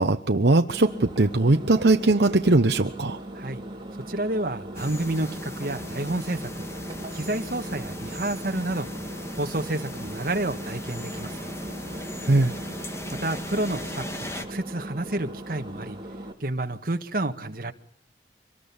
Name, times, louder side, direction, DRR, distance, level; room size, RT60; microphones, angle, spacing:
voice 1, 0.0-3.2 12.2-12.5, right 2 dB, 75° right, 7 dB, 1.0 m, -20 dB
Engine, 0.7-16.3, right 1 dB, 30° right, 3.9 m, -39 dB
voice 2, 3.9-6.7 7.1-8.9 9.3-11.5 13.2-16.0 16.4-17.7, right 2 dB, 55° right, 6 dB, 1.7 m, -30 dB
sound 1, 4.7-14.4, left 1 dB, 15° left, 2.0 m, -38 dB
24.5 x 20.0 x 7.2 m, 0.68 s
head